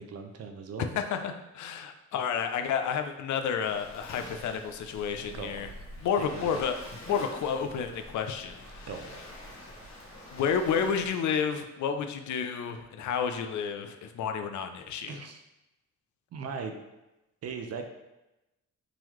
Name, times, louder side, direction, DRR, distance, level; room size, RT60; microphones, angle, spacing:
voice 1, 0.0-0.9 5.3-5.7 6.3-6.5 8.9-9.2 9.6-9.7 15.1-15.4 16.3-16.7 17.4-17.9, right 5 dB, 55° right, 6 dB, 0.5 m, -39 dB
voice 2, 0.9-5.7 6.0-6.8 7.1-8.9 10.3-15.2, left 7 dB, 70° left, 6 dB, 0.4 m, -31 dB
Waves surf, 3.6-11.1, left 1 dB, 45° left, 1.1 m, -46 dB
3.8 x 3.0 x 3.0 m, 0.97 s
cardioid pair, 125°, 31 cm